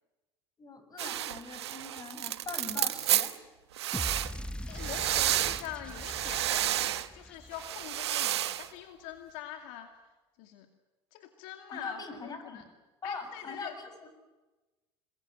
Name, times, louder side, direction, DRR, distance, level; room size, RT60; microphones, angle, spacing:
voice 1, 0.6-3.4 11.7-12.7 13.0-14.1, left 4 dB, 30° left, 9 dB, 6.8 m, -42 dB
sound 1, 1.0-3.3 3.8-4.4 4.7-5.7 5.9-7.1 7.5-8.7, right 13 dB, 85° right, 1.2 m, -31 dB
sound 2, 3.9-8.2, left 1 dB, 5° left, 1.1 m, -41 dB
voice 2, 4.7-9.9 10.4-10.7 11.1-12.6 13.0-13.8, left 11 dB, 65° left, 5 dB, 2.4 m, -44 dB
28.0 x 22.5 x 9.0 m, 1.2 s
hypercardioid pair, 80°, 14 cm